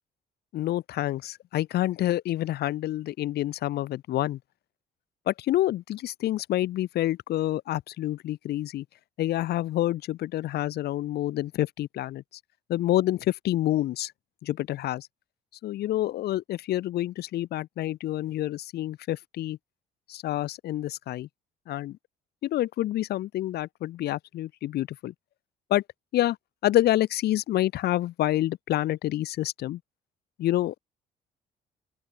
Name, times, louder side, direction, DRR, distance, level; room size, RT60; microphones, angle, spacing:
voice 1, 0.5-4.4 5.3-8.8 9.2-12.2 12.7-14.1 14.4-15.1 15.6-19.6 20.1-21.3 21.7-22.0 22.4-25.1 25.7-25.8 26.1-26.4 26.6-29.8 30.4-30.8, left 14 dB, 70° left, 5.6 m, -28 dB
open air
cardioid pair, 110°, 17 cm